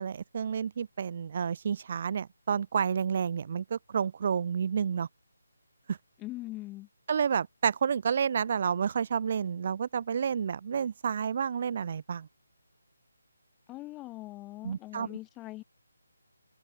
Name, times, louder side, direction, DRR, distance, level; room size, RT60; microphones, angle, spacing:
voice 1, 0.0-5.1 5.9-6.0 7.1-12.3 14.6-15.1, right 7 dB, 35° right, 0.6 m, -30 dB
voice 2, 6.2-6.9 13.7-15.6, left 18 dB, 15° left, 0.6 m, -41 dB
figure-of-eight pair, 150°, 0 cm